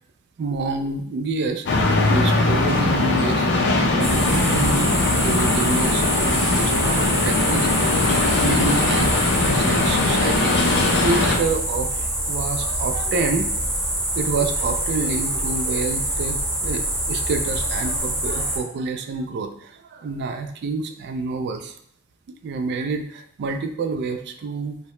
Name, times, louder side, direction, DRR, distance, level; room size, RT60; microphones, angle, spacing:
voice 1, 0.4-3.5 4.0-5.0 5.2-13.5 14.1-21.7 22.4-24.8, right 4 dB, 55° right, 6 dB, 0.3 m, -28 dB
sound 1, 1.7-11.4, left 2 dB, 55° left, 0.4 m, -20 dB
sound 2, 4.0-18.6, right 1 dB, 5° left, 0.8 m, -25 dB
2.7 x 2.0 x 3.0 m, 0.68 s
head